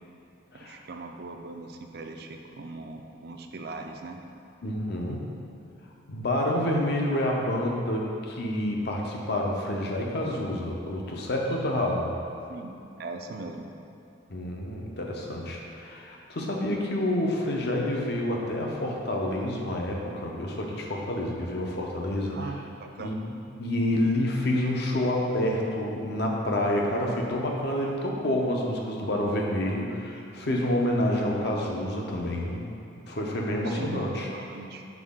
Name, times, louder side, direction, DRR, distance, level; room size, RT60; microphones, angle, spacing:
voice 1, 0.5-4.2 12.5-13.7 22.3-23.2 33.6-34.8, right 3 dB, 55° right, 4 dB, 0.4 m, -39 dB
voice 2, 4.6-5.3 6.1-12.1 14.3-22.5 23.0-23.2 23.6-32.7 33.1-34.3, left 1 dB, 55° left, -1 dB, 0.7 m, -28 dB
6.1 x 4.7 x 3.7 m, 2.7 s
head